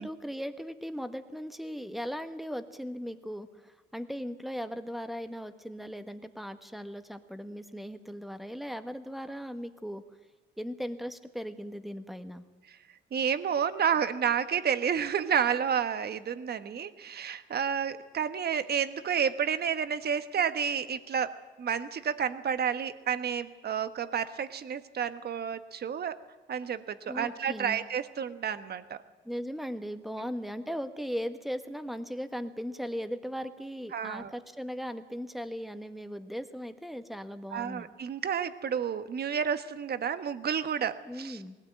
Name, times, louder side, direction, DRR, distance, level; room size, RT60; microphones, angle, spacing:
voice 1, 0.0-10.0 10.6-12.4 27.1-27.8 29.2-37.9 41.1-41.6, equal, ahead, 8 dB, 1.5 m, -38 dB
voice 2, 13.1-26.1 26.5-29.0 33.9-34.3 37.5-41.4, right 7 dB, 55° right, 11 dB, 1.3 m, -30 dB
19.5 x 16.5 x 9.1 m, 1.2 s
cardioid pair, 90°, 20 cm